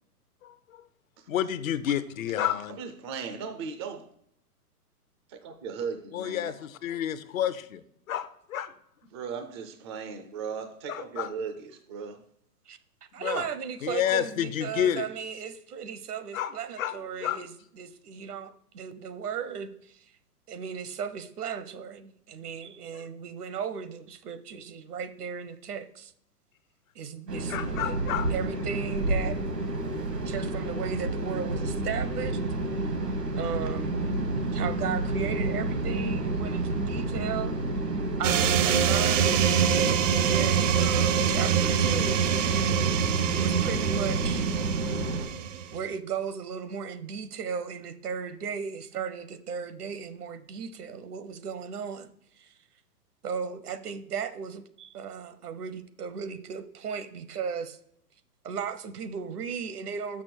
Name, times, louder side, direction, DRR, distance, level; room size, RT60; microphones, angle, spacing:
voice 1, 1.3-2.8 6.1-7.8 8.1-8.7 10.9-11.3 13.2-13.5 13.8-15.1 16.3-16.5 16.8-16.9 17.2-17.4 27.5-28.3, left 10 dB, 60° left, 0.7 m, -29 dB
voice 2, 2.7-4.1 5.3-6.5 9.1-12.2, right 6 dB, 20° right, 0.4 m, -37 dB
voice 3, 13.1-20.0 20.5-26.1 26.9-28.0 28.3-29.4 30.0-32.4 33.4-33.9 34.5-37.5 38.2-39.4 39.7-42.2 43.4-44.5 45.7-52.1 52.4-52.5 53.2-57.8 58.4-60.2, right 7 dB, 70° right, 1.0 m, -36 dB
sound 1, 27.3-45.2, right 2 dB, 85° right, 1.7 m, -30 dB
sound 2, 38.2-45.8, right 9 dB, 55° right, 0.7 m, -25 dB
6.1 x 6.1 x 4.4 m
hypercardioid pair, 120°, 47 cm